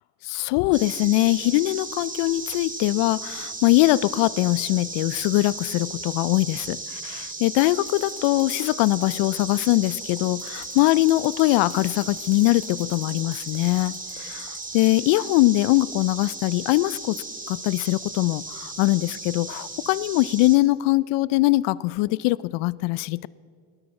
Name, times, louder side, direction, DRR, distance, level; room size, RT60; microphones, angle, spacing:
voice 1, 0.2-23.3, left 19 dB, 65° left, 0.5 m, -22 dB
sound 1, 0.7-20.6, right 3 dB, 15° right, 2.0 m, -36 dB
sound 2, 7.8-14.9, left 3 dB, 15° left, 1.9 m, -48 dB
18.5 x 12.0 x 6.0 m
supercardioid pair, 80°, 47 cm